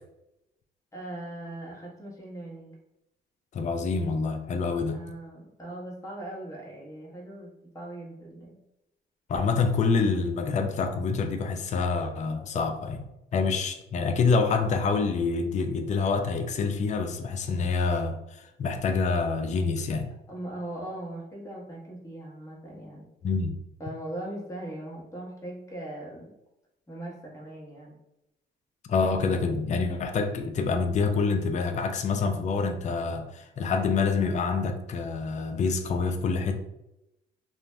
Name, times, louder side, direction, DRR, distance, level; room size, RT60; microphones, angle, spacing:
voice 1, 0.9-2.7 4.9-8.6 20.3-23.1 23.8-26.3 26.9-28.0, right 1 dB, 15° left, -4 dB, 1.1 m, -39 dB
voice 2, 3.5-5.0 9.3-13.1 13.3-20.1 23.2-23.5 28.9-36.6, left 4 dB, 35° left, 5 dB, 0.4 m, -27 dB
2.5 x 2.0 x 3.3 m, 0.88 s
cardioid pair, 90°, 20 cm